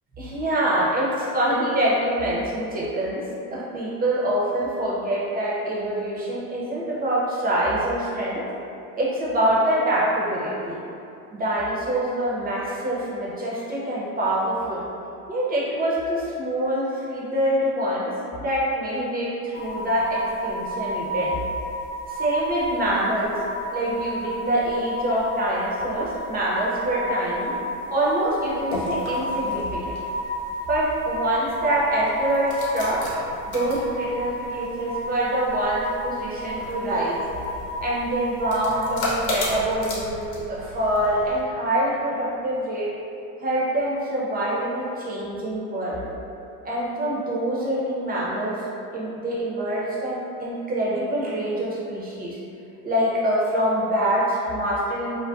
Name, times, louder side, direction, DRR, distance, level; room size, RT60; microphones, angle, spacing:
voice 1, 0.2-3.2 3.5-8.4 9.0-10.8 11.3-14.8 15.3-21.4 22.1-23.3 23.7-27.6 27.9-30.0 30.7-33.2 33.5-37.2 37.8-42.9 43.4-46.1 46.6-48.6 48.9-52.4 52.8-55.2, right 1 dB, 20° right, -6 dB, 0.6 m, -25 dB
sound 1, 19.5-39.0, equal, 30° left, 0.5 m, -32 dB
sound 2, 28.3-41.4, left 1 dB, 65° left, 0.9 m, -35 dB
2.4 x 2.1 x 2.4 m, 2.6 s
hypercardioid pair, 90°, 46 cm